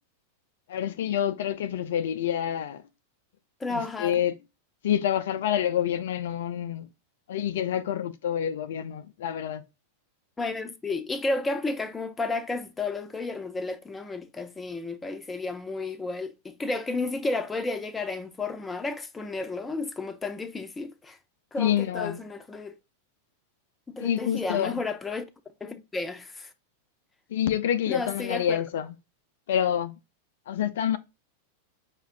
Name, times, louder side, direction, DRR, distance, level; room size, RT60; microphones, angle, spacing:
voice 1, 0.7-2.8 3.7-4.3 4.8-6.9 7.3-9.6 21.6-22.2 24.0-24.8 27.3-28.9 29.5-30.0 30.5-31.0, left 10 dB, 70° left, 0.4 m, -27 dB
voice 2, 3.6-4.1 10.4-21.2 21.5-22.7 23.9-25.3 25.6-26.5 27.9-28.6, left 3 dB, 15° left, 0.6 m, -32 dB
5.0 x 2.5 x 3.3 m
hypercardioid pair, 95°, 0 cm